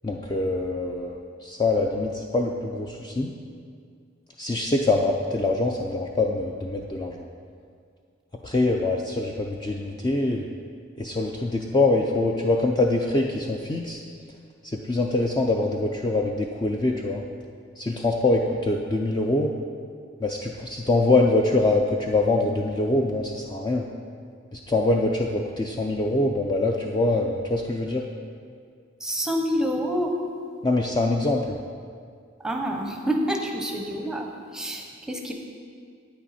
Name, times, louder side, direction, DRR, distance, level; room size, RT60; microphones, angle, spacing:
voice 1, 0.0-3.3 4.4-7.3 8.4-10.5 11.0-14.0 14.6-17.2 17.8-19.5 20.2-23.8 24.5-28.0 30.6-31.6, left 2 dB, 20° left, 1 dB, 0.4 m, -24 dB
voice 2, 29.0-30.1 32.4-35.3, equal, 5° right, 1 dB, 0.8 m, -27 dB
9.2 x 8.7 x 4.2 m, 2.2 s
head